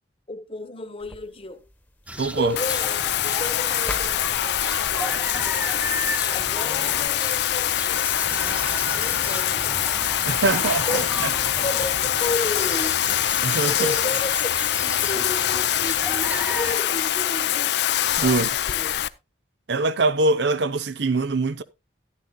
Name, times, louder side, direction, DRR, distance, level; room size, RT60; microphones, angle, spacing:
voice 1, 0.3-1.6 2.4-5.9 6.2-9.8 10.5-13.0 13.7-14.5 15.0-17.7 18.2-19.0, left 2 dB, 30° left, 1.1 m, -33 dB
sound 1, 1.0-7.1, left 1 dB, 10° left, 1.1 m, -43 dB
sound 2, 2.1-16.8, right 1 dB, 10° right, 0.6 m, -34 dB
voice 2, 2.2-2.6 10.3-11.3 13.4-13.9 18.2-18.5 19.7-21.6, right 3 dB, 70° right, 0.7 m, -23 dB
Bathtub (filling or washing), 2.6-19.1, left 11 dB, 70° left, 0.5 m, -24 dB
14.0 x 10.5 x 2.2 m
head